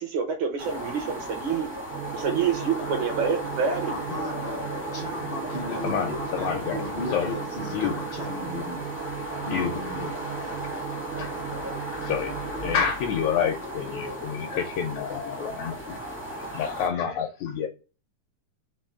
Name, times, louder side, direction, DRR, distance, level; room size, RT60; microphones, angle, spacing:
voice 1, 0.0-1.7 2.1-3.9, right 6 dB, 70° right, 4 dB, 2.1 m, -27 dB
sound 1, 0.6-16.9, equal, 15° right, 0.5 m, -36 dB
sound 2, 1.9-12.9, right 9 dB, 90° right, 2.3 m, -37 dB
voice 2, 3.9-4.6 4.9-8.8 9.4-10.2, left 2 dB, 55° left, -3 dB, 0.6 m, -36 dB
voice 3, 5.7-6.8 7.1-7.3 7.7-8.0 9.5-9.8 10.6-11.3 12.0-16.0 16.3-17.7, left 7 dB, 80° left, 5 dB, 1.7 m, -29 dB
5.5 x 2.6 x 3.6 m, 0.33 s
omnidirectional pair, 3.8 m